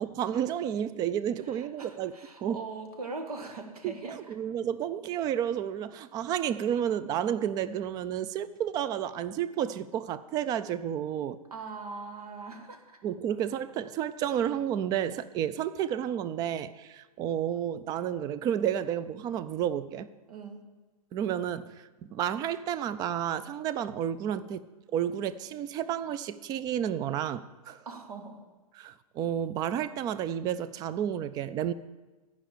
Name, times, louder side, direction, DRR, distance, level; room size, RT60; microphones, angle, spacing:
voice 1, 0.0-2.1 2.4-2.6 3.8-11.4 13.0-20.1 21.1-27.8 28.8-31.7, right 10 dB, 20° right, 0.3 m, -31 dB
voice 2, 1.5-4.3 11.5-13.0 20.3-20.6 27.8-28.4, right 4 dB, 80° right, 1.6 m, -41 dB
13.0 x 5.2 x 7.2 m
hypercardioid pair, 130°, 19 cm